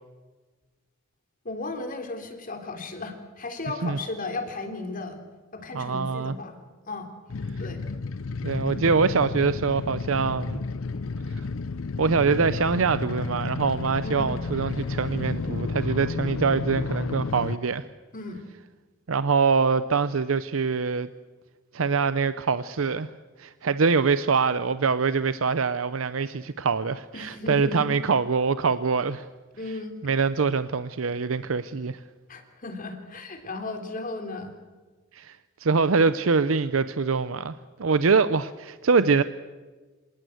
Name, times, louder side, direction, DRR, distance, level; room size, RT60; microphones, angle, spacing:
voice 1, 1.4-5.2 5.5-6.6 6.9-7.1 7.6-7.8 14.0-14.5 18.1-18.4 27.1-27.9 29.5-30.0 32.3-34.5, left 3 dB, 45° left, 6 dB, 3.4 m, -35 dB
voice 2, 5.7-6.3 8.4-10.6 11.3-11.5 12.0-17.8 19.1-21.1 21.7-23.1 23.4-29.3 30.0-32.0 35.1-39.2, right 5 dB, 85° right, 13 dB, 0.7 m, -24 dB
sound 1, 7.3-17.6, left 3 dB, 90° left, 0.6 m, -31 dB
26.5 x 18.5 x 7.9 m, 1.3 s
head